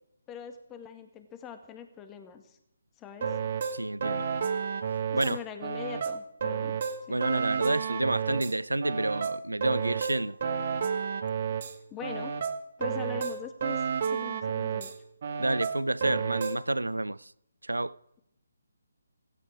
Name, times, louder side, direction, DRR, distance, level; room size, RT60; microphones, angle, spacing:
voice 1, 0.3-2.6 3.0-3.4 5.1-7.2 11.9-12.3 12.8-13.8 14.1-14.9, left 7 dB, 15° left, 1.8 m, -42 dB
sound 1, 3.2-5.3 5.6-8.5 8.8-11.7 12.0-14.9 15.2-16.6, right 6 dB, 50° right, 1.9 m, -31 dB
voice 2, 3.7-4.3 5.1-5.4 7.1-10.4 15.4-17.3 17.6-18.0, right 2 dB, 90° right, 0.6 m, -29 dB
16.5 x 15.5 x 4.8 m
figure-of-eight pair, 150°, 0 cm